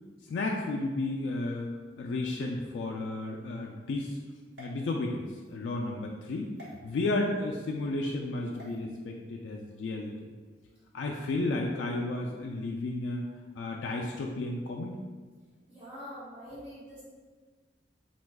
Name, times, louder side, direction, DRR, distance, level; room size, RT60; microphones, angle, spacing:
voice 1, 0.3-1.7 2.0-4.2 4.6-6.5 6.8-10.3 10.9-13.3 13.5-15.0, left 2 dB, 80° left, 0 dB, 0.3 m, -33 dB
sound 1, 4.5-5.5 6.6-6.7 8.5-8.8, left 1 dB, 70° right, 1.0 m, -51 dB
voice 2, 15.7-17.0, equal, 10° right, -15 dB, 1.5 m, -44 dB
2.9 x 2.4 x 3.4 m, 1.4 s
head